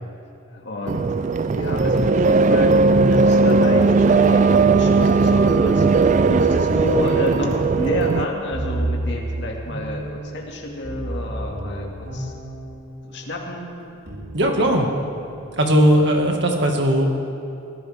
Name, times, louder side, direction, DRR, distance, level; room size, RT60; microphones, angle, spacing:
voice 1, 0.5-1.0 1.5-2.8 3.1-5.9 6.3-12.3 13.1-13.7, left 2 dB, 55° left, -1 dB, 2.3 m, -29 dB
sound 1, 0.9-8.3, right 4 dB, 35° right, 0.4 m, -17 dB
sound 2, 1.7-13.1 13.8-16.2, right 1 dB, 85° right, 4.2 m, -31 dB
voice 2, 14.3-14.9 15.6-17.0, right 1 dB, 55° right, 1 dB, 2.1 m, -18 dB
23.0 x 16.0 x 3.7 m, 2.9 s
head